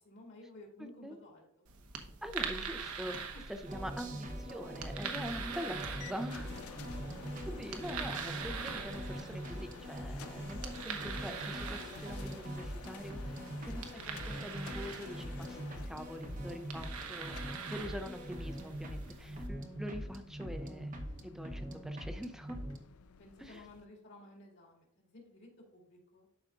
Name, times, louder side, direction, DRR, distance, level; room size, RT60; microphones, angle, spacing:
voice 1, 0.0-1.7 3.3-3.5 5.4-5.6 13.7-13.8 21.0-21.2 23.2-26.3, left 2 dB, 55° left, -1 dB, 2.4 m, -55 dB
voice 2, 0.8-1.2 2.2-3.2 3.5-6.6 7.5-13.4 13.7-15.6 15.9-17.4 17.7-20.9 21.2-22.6 23.4-23.6, equal, ahead, 6 dB, 0.5 m, -44 dB
sound 1, 1.7-19.5, right 6 dB, 85° right, 1.0 m, -44 dB
sound 2, 3.6-22.8, equal, 35° right, 0.9 m, -43 dB
sound 3, 6.0-23.9, left 7 dB, 80° left, 0.4 m, -53 dB
12.0 x 5.0 x 2.5 m, 0.72 s
head